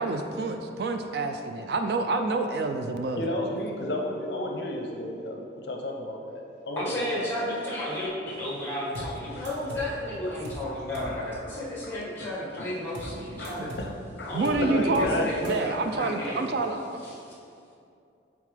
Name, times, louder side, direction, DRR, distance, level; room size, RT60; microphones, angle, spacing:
voice 1, 0.0-3.2 5.4-5.5 13.6-13.7 14.3-17.0, right 3 dB, 55° right, 6 dB, 0.3 m, -28 dB
voice 2, 3.2-7.5 8.9-9.0 9.4-9.5 10.3-10.4 10.7-10.8 11.1-11.2 11.4-12.3 12.6-12.7 13.0-13.9 14.2-15.6, left 1 dB, 65° left, 1 dB, 0.6 m, -33 dB
voice 3, 6.8-13.7 14.2-16.6 17.0-17.3, left 1 dB, 10° left, -6 dB, 1.4 m, -33 dB
sound 1, 8.9-9.2 9.4-9.9 10.4-10.7 10.9-11.2 12.9-13.2 13.4-13.9 14.4-14.7 14.9-15.2 15.4-15.5, equal, 85° right, 1.0 m, -39 dB
8.3 x 3.6 x 3.4 m, 2.5 s
head